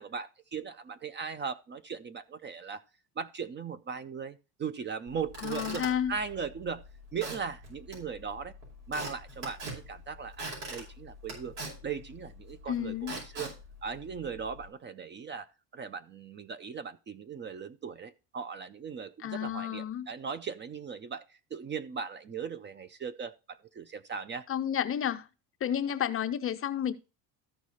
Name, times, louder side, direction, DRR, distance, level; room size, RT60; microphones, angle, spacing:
voice 1, 0.0-2.8 3.2-6.9 7.1-8.5 8.9-13.5 13.8-15.5 15.7-24.5, right 6 dB, 25° right, 0.5 m, -38 dB
Squeak / Wood, 5.1-14.7, right 1 dB, 90° right, 5.6 m, -44 dB
voice 2, 5.4-6.1 12.7-13.2 19.2-20.1 24.5-25.3 25.6-26.9, left 9 dB, 30° left, 0.6 m, -31 dB
14.0 x 4.7 x 4.1 m
cardioid pair, 125°, 42 cm